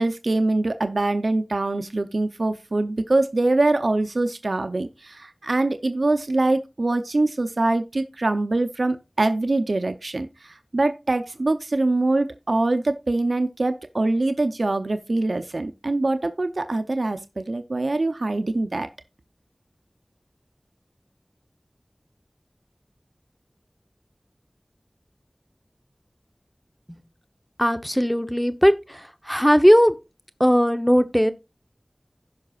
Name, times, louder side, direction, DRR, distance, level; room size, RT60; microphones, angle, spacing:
voice 1, 0.0-18.9, right 2 dB, 90° right, 0.6 m, -24 dB
voice 2, 27.6-28.7 29.3-29.9 30.4-31.3, equal, 5° left, 0.8 m, -17 dB
16.0 x 5.7 x 2.4 m
wide cardioid pair, 40°, 0 cm